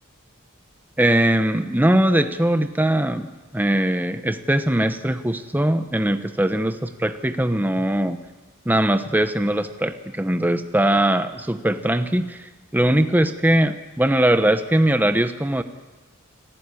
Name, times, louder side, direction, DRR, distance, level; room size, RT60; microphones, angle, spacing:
voice 1, 1.0-8.2 8.7-12.4 12.7-15.6, right 1 dB, 10° right, 8 dB, 0.9 m, -21 dB
27.0 x 15.0 x 9.8 m, 1.2 s
head